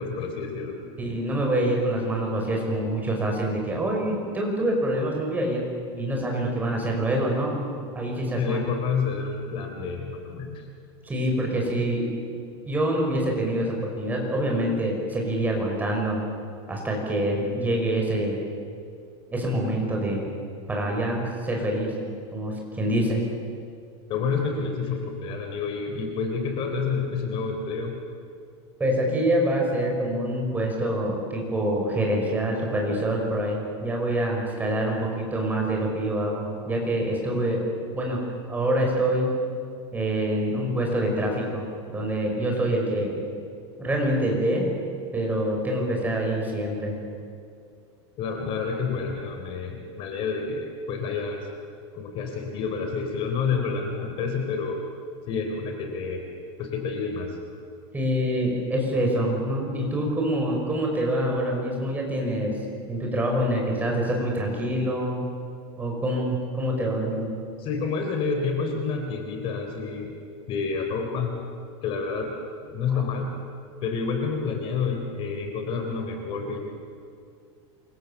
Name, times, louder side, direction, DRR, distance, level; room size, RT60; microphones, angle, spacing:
voice 1, 0.0-0.8 8.4-10.7 24.1-28.0 48.2-51.5 51.9-54.8 55.3-56.2 56.6-57.4 67.6-70.1 70.5-71.4 71.8-72.4 72.6-73.4 73.8-76.6, left 5 dB, 40° left, 4 dB, 3.5 m, -29 dB
voice 2, 1.0-5.6 5.9-7.6 7.9-8.6 11.0-12.1 12.7-16.2 16.7-18.4 19.3-20.3 20.7-21.9 22.3-23.2 28.8-37.6 37.9-38.2 38.5-39.5 39.9-41.6 41.9-43.2 43.8-44.7 45.1-46.9 57.9-62.6 62.9-65.3 65.8-67.3, right 1 dB, 10° right, 0 dB, 5.8 m, -26 dB
28.0 x 25.0 x 7.3 m, 2.4 s
supercardioid pair, 150°, 15 cm